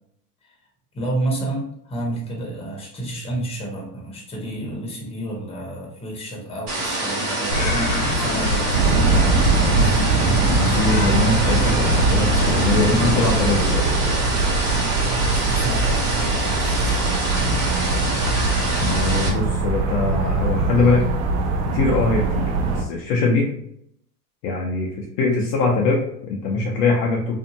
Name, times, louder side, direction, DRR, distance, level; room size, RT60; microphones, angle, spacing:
voice 1, 0.9-10.2 15.1-17.0 17.4-17.6, right 1 dB, 10° left, -2 dB, 1.0 m, -31 dB
sound 1, 6.7-19.3, right 2 dB, 35° right, 1.1 m, -26 dB
sound 2, 7.5-13.4, left 1 dB, 85° left, 0.9 m, -25 dB
sound 3, 8.7-22.8, right 3 dB, 50° right, 0.6 m, -21 dB
voice 2, 10.5-13.8 18.8-21.0 21.7-23.5 24.4-27.4, left 3 dB, 45° left, -2 dB, 0.6 m, -22 dB
2.6 x 2.4 x 2.7 m, 0.72 s
hypercardioid pair, 110°, 49 cm